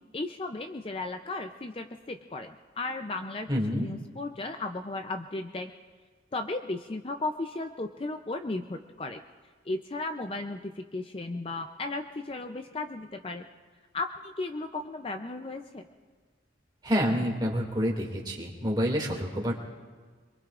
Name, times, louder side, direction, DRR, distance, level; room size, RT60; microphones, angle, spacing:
voice 1, 0.1-5.7 6.3-9.2 9.6-13.5 13.9-15.9, left 2 dB, 30° left, 6 dB, 0.5 m, -35 dB
voice 2, 3.5-3.8 16.8-19.6, equal, 20° right, -1 dB, 2.3 m, -28 dB
25.5 x 23.0 x 2.5 m, 1.5 s
head